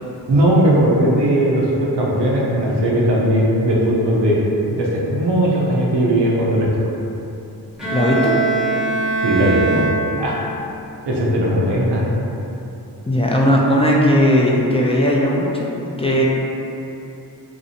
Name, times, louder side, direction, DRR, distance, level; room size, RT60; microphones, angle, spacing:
voice 1, 0.3-4.4 4.7-6.7 9.2-9.9 10.2-10.4 11.0-12.0, right 1 dB, 80° right, -4 dB, 0.6 m, -18 dB
Bowed string instrument, 7.8-10.5, right 3 dB, ahead, 0.8 m, -22 dB
voice 2, 7.9-8.3 13.1-15.7 16.0-16.2, equal, 15° left, -3 dB, 0.3 m, -17 dB
2.6 x 2.1 x 2.7 m, 2.9 s
cardioid pair, 45°, 41 cm